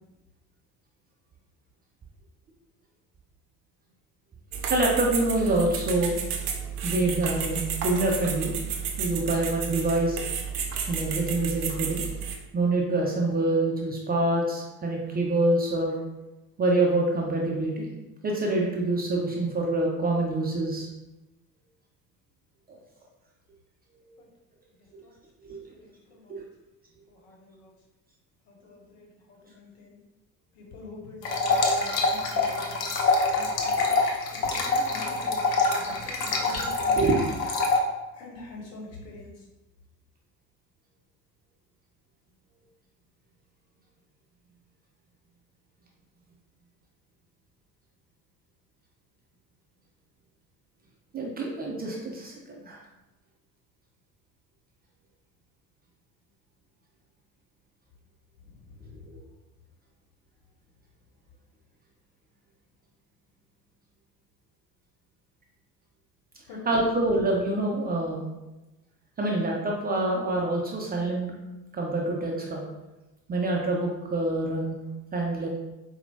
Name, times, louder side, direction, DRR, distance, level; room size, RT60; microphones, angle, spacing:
sound 1, 4.5-12.4, right 7 dB, 75° right, 0.6 m, -32 dB
voice 1, 4.7-6.1 6.8-8.5 9.0-10.2 10.9-12.0 12.5-15.9 16.6-17.9 18.2-20.9 22.7-22.8 25.5-25.6 26.3-26.4 37.0-37.2 51.1-52.8 66.7-68.3 69.2-71.3 71.7-72.6 73.3-74.8 75.1-75.5, right 2 dB, 20° right, -2 dB, 0.4 m, -26 dB
voice 2, 25.9-26.4 27.1-27.7 28.5-30.0 30.5-32.9 33.3-33.8 34.3-37.4 38.1-39.5 58.4-59.0 66.5-66.6, left 2 dB, 60° left, -1 dB, 1.0 m, -45 dB
sound 2, 31.2-37.8, left 3 dB, 80° left, 0.6 m, -25 dB
4.2 x 2.1 x 2.6 m, 1.0 s
figure-of-eight pair, 55°, 48 cm